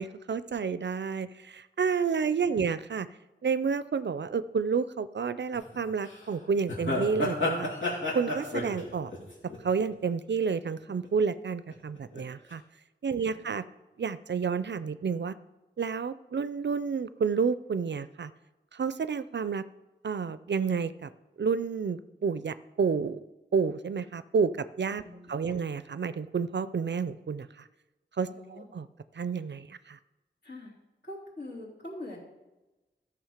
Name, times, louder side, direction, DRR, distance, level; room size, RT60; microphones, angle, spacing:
voice 1, 0.0-3.1 3.4-7.7 8.1-9.1 9.6-12.6 13.0-13.6 14.0-15.3 15.8-18.3 18.7-19.7 20.0-21.1 21.4-23.2 23.5-25.0 25.3-27.5 28.2-28.9 29.2-30.0, right 5 dB, 65° right, 14 dB, 0.4 m, -30 dB
sound 1, 5.5-5.8 6.0-6.2 6.7-10.3 10.6-11.0 11.7-12.2 12.5-12.6, left 2 dB, 80° left, 2.6 m, -31 dB
voice 2, 25.0-25.6 28.3-28.6 30.4-30.7 31.0-32.2, left 1 dB, 60° left, -4 dB, 3.0 m, -44 dB
13.5 x 6.0 x 5.0 m, 1.1 s
wide cardioid pair, 55°, 20 cm